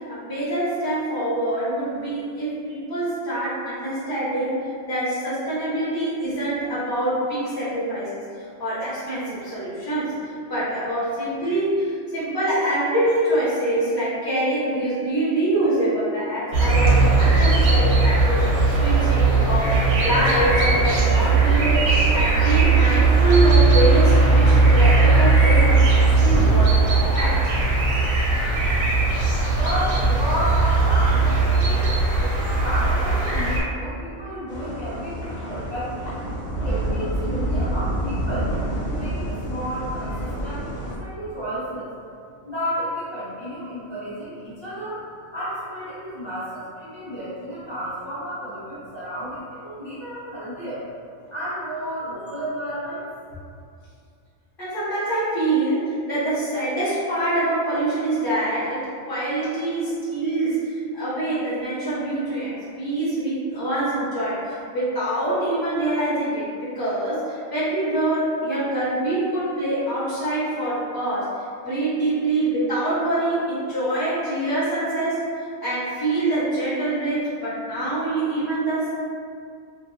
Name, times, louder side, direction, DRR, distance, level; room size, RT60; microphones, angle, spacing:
voice 1, 0.0-8.3 8.6-21.9 22.1-26.9 27.2-27.5 54.6-75.3 75.6-78.9, right 1 dB, 20° left, -12 dB, 0.9 m, -25 dB
sound 1, 16.5-33.6, right 3 dB, 70° right, 0.9 m, -18 dB
voice 2, 29.5-31.9 32.3-36.1 36.6-38.6 38.9-41.9 42.4-45.0 45.3-50.9 51.3-53.0, equal, 35° right, -12 dB, 0.4 m, -31 dB
sound 2, 34.5-41.0, right 1 dB, 75° left, 1.1 m, -28 dB
2.6 x 2.5 x 2.6 m, 2.3 s
omnidirectional pair, 1.4 m